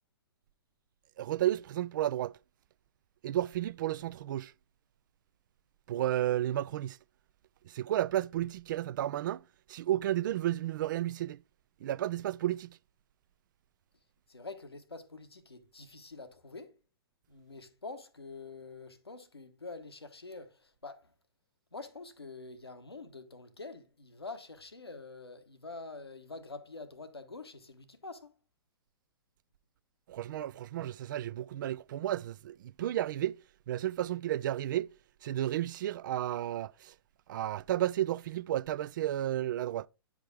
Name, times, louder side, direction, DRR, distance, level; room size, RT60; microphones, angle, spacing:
voice 1, 1.2-2.3 3.2-4.5 5.9-7.0 7.6-9.4 9.7-11.4 11.8-12.8 30.1-33.4 33.7-34.9 35.2-36.9 37.3-39.9, right 12 dB, 55° right, 0.4 m, -32 dB
voice 2, 14.3-16.8 17.3-21.1 21.7-28.3, left 3 dB, 90° left, 1.1 m, -46 dB
9.4 x 4.9 x 3.4 m
figure-of-eight pair, 115°, 13 cm